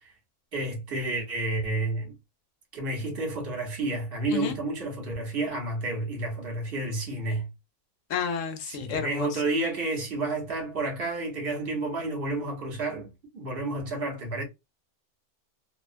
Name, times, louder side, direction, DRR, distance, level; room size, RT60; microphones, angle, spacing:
voice 1, 0.5-2.1 2.7-7.5 8.7-14.4, right 2 dB, 45° right, 1.1 m, -30 dB
voice 2, 8.1-9.4, left 7 dB, 65° left, 0.9 m, -31 dB
2.8 x 2.2 x 2.5 m
omnidirectional pair, 1.6 m